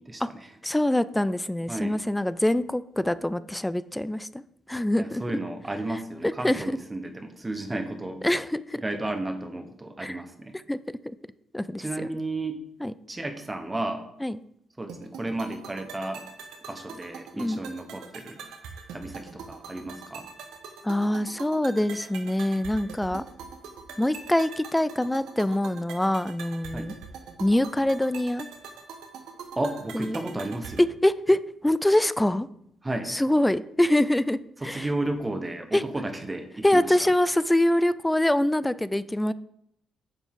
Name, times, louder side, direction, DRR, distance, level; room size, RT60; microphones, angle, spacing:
voice 1, 0.0-0.5 1.7-2.0 5.0-8.2 8.8-10.6 11.8-12.6 13.1-14.1 14.8-16.2 16.7-18.4 18.9-20.3 26.7-26.9 29.6-30.8 32.8-33.1 34.6-37.0, right 2 dB, 20° right, 6 dB, 1.1 m, -33 dB
voice 2, 0.6-4.4 4.7-5.2 6.2-6.6 8.2-8.8 10.0-10.2 10.7-10.8 11.5-12.1 12.8-12.9 14.2-14.4 17.4-17.6 20.8-23.2 24.0-26.9 27.4-28.5 29.9-30.2 30.8-32.5 33.1-34.9 35.7-35.8 36.6-39.3, left 1 dB, 10° left, 16 dB, 0.4 m, -24 dB
sound 1, 14.9-30.9, right 5 dB, 80° right, 1.2 m, -43 dB
10.0 x 7.1 x 3.7 m, 0.75 s
cardioid pair, 90°, 0 cm